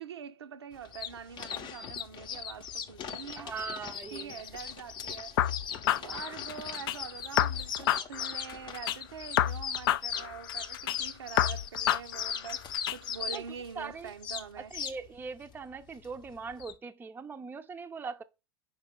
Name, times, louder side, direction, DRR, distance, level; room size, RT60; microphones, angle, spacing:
voice 1, 0.0-3.5 4.1-5.4 5.7-14.8, right 7 dB, 85° right, 0.6 m, -44 dB
sound 1, 0.7-16.7, left 7 dB, 35° left, 0.7 m, -39 dB
voice 2, 3.4-4.4 13.3-13.4 13.8-14.1 14.7-18.2, right 5 dB, 15° right, 0.5 m, -41 dB
sound 2, 5.4-7.0 7.4-9.0 9.4-11.0 11.4-13.0, left 12 dB, 65° left, 0.4 m, -29 dB
5.1 x 4.9 x 3.8 m
hypercardioid pair, 90°, 13 cm